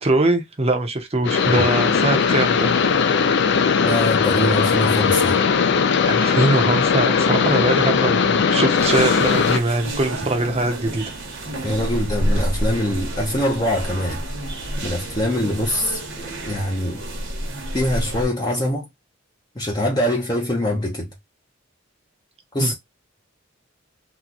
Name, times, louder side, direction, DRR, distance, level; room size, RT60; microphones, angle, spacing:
voice 1, 0.0-2.8 6.1-11.0 22.6-22.7, right 2 dB, 30° right, 0.8 m, -22 dB
sound 1, 1.2-9.6, left 6 dB, 60° left, 0.4 m, -19 dB
voice 2, 3.8-5.4 11.6-14.2 14.8-17.0 17.7-18.9 19.6-21.1 22.5-22.7, left 1 dB, 20° left, 0.7 m, -23 dB
sound 2, 8.8-18.3, right 1 dB, 65° right, 1.1 m, -29 dB
3.0 x 2.3 x 3.8 m
head